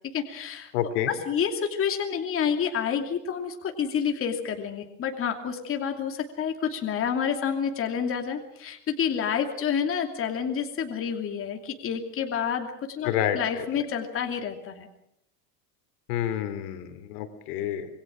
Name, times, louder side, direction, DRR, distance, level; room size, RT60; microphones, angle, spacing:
voice 1, 0.1-14.9, left 7 dB, 25° left, 4 dB, 2.7 m, -29 dB
voice 2, 0.7-1.1 13.0-13.4 16.1-17.9, left 11 dB, 65° left, 10 dB, 3.2 m, -28 dB
27.0 x 22.0 x 6.3 m, 0.76 s
supercardioid pair, 140°, 49 cm